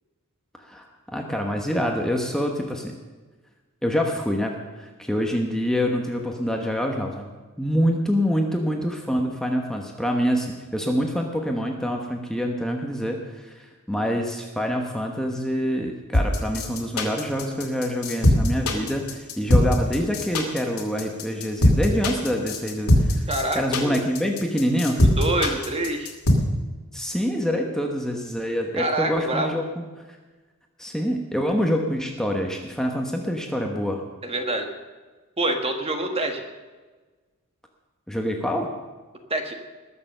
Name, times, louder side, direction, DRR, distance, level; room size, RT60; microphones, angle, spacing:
voice 1, 0.6-2.9 3.8-7.3 7.6-23.3 23.5-25.0 26.9-29.8 30.8-34.0 38.1-38.7, equal, ahead, 1 dB, 1.1 m, -26 dB
sound 1, 16.1-26.3, left 1 dB, 85° left, 2.5 m, -20 dB
voice 2, 23.3-24.0 25.2-26.1 28.7-29.5 34.2-34.7 35.4-36.4 39.3-39.5, right 2 dB, 25° right, 4 dB, 1.5 m, -26 dB
20.0 x 6.9 x 6.7 m, 1.3 s
head